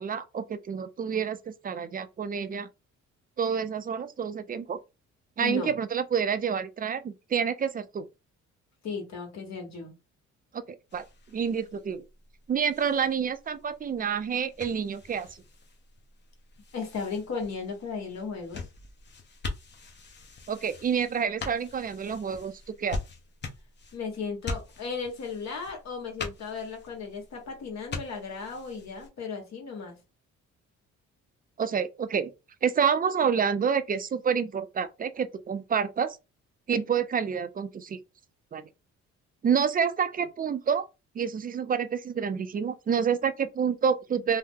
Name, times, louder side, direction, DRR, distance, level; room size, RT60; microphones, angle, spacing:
voice 1, 0.0-2.7 3.4-4.8 5.4-8.1 10.5-10.6 10.9-11.0 11.3-12.0 12.5-15.3 20.5-22.5 22.8-23.0 31.6-32.3 32.6-36.2 36.7-38.0 38.5-38.7 39.4-40.9 41.2-44.4, right 7 dB, 30° right, 0.4 m, -28 dB
voice 2, 5.4-5.8 8.8-9.9 16.7-18.6 23.9-30.0, left 5 dB, 60° left, 1.3 m, -35 dB
sound 1, 10.9-29.1, left 3 dB, 35° left, 0.7 m, -43 dB
2.8 x 2.0 x 3.5 m
cardioid pair, 90°, 30 cm